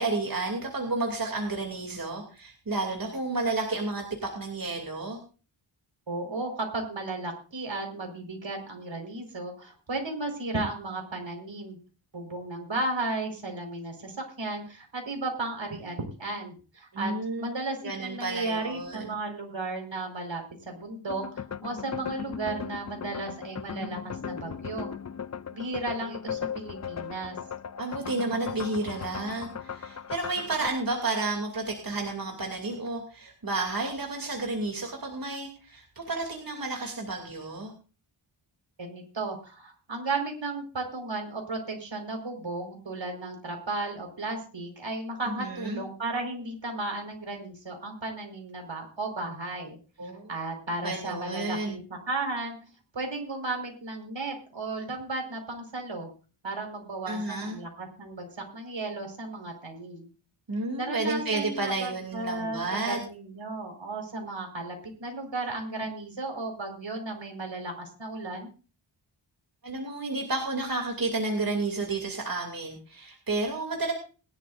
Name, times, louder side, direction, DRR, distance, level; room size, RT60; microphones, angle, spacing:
voice 1, 0.0-5.2 16.9-17.6 17.8-19.1 27.8-37.7 45.3-45.8 50.0-50.3 50.8-51.8 57.1-57.6 60.5-63.0 69.6-73.9, right 2 dB, 45° right, 1 dB, 2.8 m, -31 dB
voice 2, 6.1-11.8 12.1-24.9 25.5-27.3 38.8-52.6 52.9-56.1 56.4-58.3 58.5-60.1 60.7-68.5, right 2 dB, 60° right, 3 dB, 4.9 m, -34 dB
sound 1, 21.1-30.7, left 7 dB, 35° left, 0.6 m, -37 dB
21.0 x 11.5 x 2.6 m, 0.36 s
wide cardioid pair, 70°, 50 cm